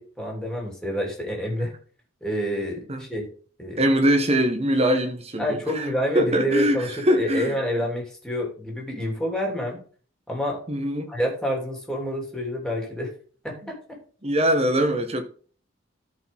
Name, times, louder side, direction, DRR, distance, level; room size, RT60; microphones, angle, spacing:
voice 1, 0.0-1.7 2.2-3.3 3.6-3.8 5.4-9.8 10.3-10.6 11.1-13.1 13.4-14.0, equal, 5° left, 3.0 m, -28 dB
voice 2, 3.8-5.9 6.1-7.6 10.7-11.1 14.2-15.2, equal, 30° right, 1.4 m, -22 dB
13.5 x 5.0 x 3.6 m
head